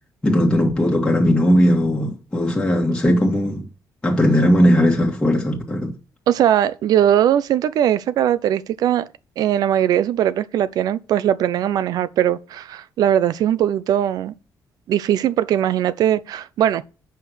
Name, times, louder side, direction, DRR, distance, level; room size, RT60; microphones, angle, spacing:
voice 1, 0.2-3.7 4.0-5.9, equal, 10° left, 1.7 m, -18 dB
voice 2, 6.3-9.1 9.4-14.3 14.9-16.8, right 10 dB, 65° right, 0.7 m, -20 dB
8.5 x 5.7 x 6.3 m
cardioid pair, 175°, 7 cm